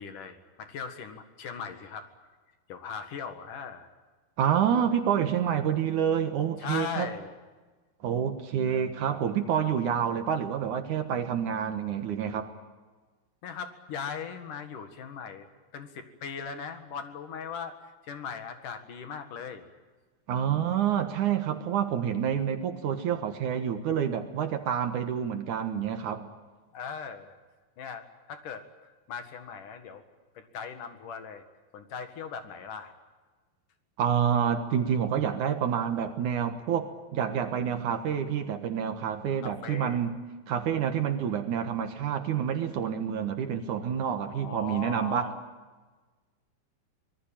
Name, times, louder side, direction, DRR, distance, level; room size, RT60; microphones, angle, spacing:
voice 1, 0.0-2.1 2.7-3.9 6.6-7.3 13.4-15.5 15.7-19.7 26.7-27.3 27.8-28.7 29.1-30.0 30.3-31.4 31.7-32.9 39.4-40.0 44.3-45.4, left 6 dB, 60° left, 8 dB, 3.1 m, -39 dB
voice 2, 4.4-7.1 8.0-12.5 20.3-26.3 34.0-40.1 40.5-45.3, right 8 dB, 60° right, 8 dB, 2.5 m, -28 dB
25.5 x 20.0 x 8.8 m, 1.3 s
omnidirectional pair, 4.4 m